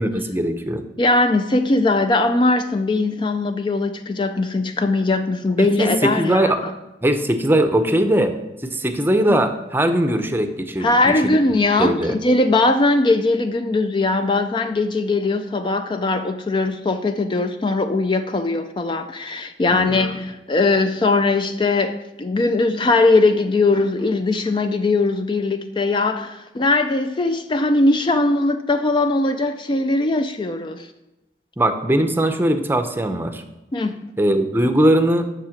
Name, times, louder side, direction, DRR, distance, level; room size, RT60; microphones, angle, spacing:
voice 1, 0.0-0.8 5.6-6.6 7.0-8.3 8.6-11.4 11.8-12.2 19.7-20.0 31.6-33.4 34.2-35.3, right 1 dB, 10° right, 8 dB, 0.6 m, -20 dB
voice 2, 1.0-6.5 10.8-30.9 33.7-34.0, left 2 dB, 25° left, 8 dB, 0.4 m, -20 dB
7.4 x 6.6 x 6.4 m, 0.98 s
head